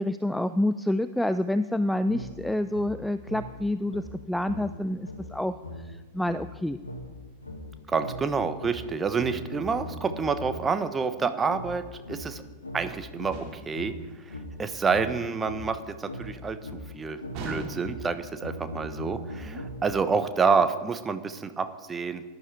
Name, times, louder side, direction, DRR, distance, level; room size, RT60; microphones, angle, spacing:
voice 1, 0.0-6.8 19.5-19.6, left 1 dB, 5° left, 13 dB, 0.4 m, -28 dB
sound 1, 2.1-10.8 11.5-20.1, left 1 dB, 80° left, 1.5 m, -41 dB
voice 2, 7.9-12.4 12.7-13.9 14.2-16.7 16.9-22.2, right 5 dB, 15° right, 10 dB, 1.0 m, -28 dB
sound 2, 13.3-13.9 17.3-18.2, right 3 dB, 40° right, 3.2 m, -38 dB
18.0 x 11.0 x 4.8 m, 1.3 s
figure-of-eight pair, 90°, 0 cm